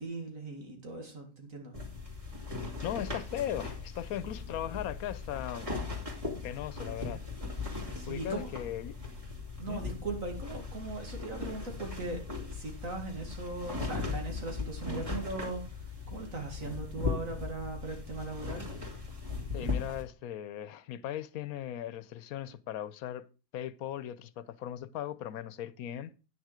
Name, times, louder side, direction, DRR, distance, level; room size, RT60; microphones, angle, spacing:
voice 1, 0.0-1.8 7.6-8.5 9.6-18.7, right 3 dB, 70° right, 2.5 m, -39 dB
sound 1, 1.7-20.0, left 4 dB, 25° right, 2.5 m, -38 dB
voice 2, 2.8-5.8 6.4-7.2 8.1-9.0 9.7-9.8 19.5-23.3 23.5-26.1, left 11 dB, 85° left, 1.1 m, -38 dB
9.4 x 6.5 x 4.8 m
omnidirectional pair, 1.5 m